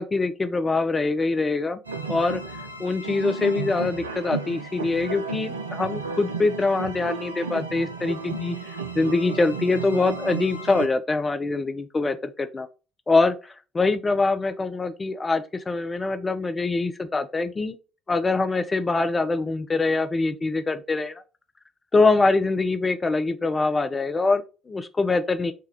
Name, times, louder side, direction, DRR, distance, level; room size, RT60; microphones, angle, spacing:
voice 1, 0.0-1.8 2.1-2.4 2.8-8.6 9.0-12.7 13.1-17.8 18.1-21.2 21.9-25.5, left 3 dB, 25° left, 0.5 m, -24 dB
sound 1, 1.8-10.9, right 4 dB, 80° right, 0.4 m, -33 dB
5.6 x 2.3 x 3.4 m
figure-of-eight pair, 50°, 0 cm